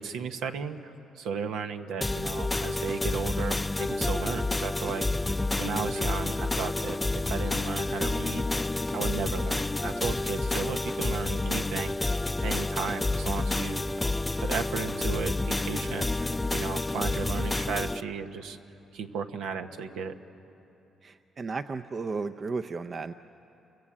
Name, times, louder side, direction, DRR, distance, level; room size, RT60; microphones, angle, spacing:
voice 1, 0.0-5.1 5.6-8.5 8.9-12.1 12.4-14.0 14.4-18.6 18.9-20.1, right 6 dB, 85° right, 6 dB, 1.2 m, -35 dB
sound 1, 2.0-18.0, left 2 dB, 15° left, 0.5 m, -29 dB
voice 2, 21.0-23.1, right 4 dB, 40° right, 9 dB, 0.6 m, -34 dB
29.0 x 22.5 x 8.6 m, 3.0 s
cardioid pair, 90°, 0 cm